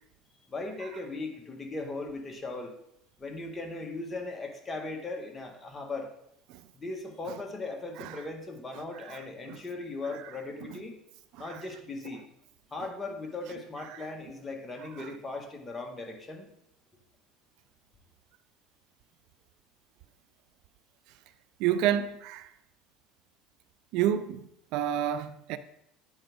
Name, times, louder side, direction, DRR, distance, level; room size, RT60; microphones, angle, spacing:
voice 1, 0.5-2.7 3.2-6.1 6.7-11.0 11.4-12.2 12.7-16.5, left 3 dB, 20° left, 1.7 m, -38 dB
voice 2, 21.6-22.5 23.9-25.6, right 10 dB, 70° right, 0.4 m, -30 dB
8.8 x 4.8 x 3.7 m
supercardioid pair, 90°, 0 cm